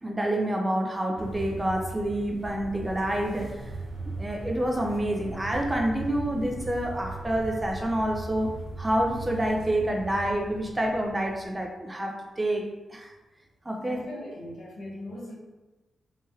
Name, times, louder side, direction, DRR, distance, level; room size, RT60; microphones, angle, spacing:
voice 1, 0.0-3.6 4.1-8.5 8.8-12.6 12.9-13.1 13.7-14.0, right 1 dB, 15° right, 0 dB, 0.3 m, -28 dB
sound 1, 1.2-11.7, right 2 dB, 55° right, 0.7 m, -39 dB
voice 2, 13.8-15.3, left 1 dB, 80° left, -5 dB, 0.7 m, -39 dB
3.1 x 2.9 x 2.3 m, 1.1 s
wide cardioid pair, 130°, 0 cm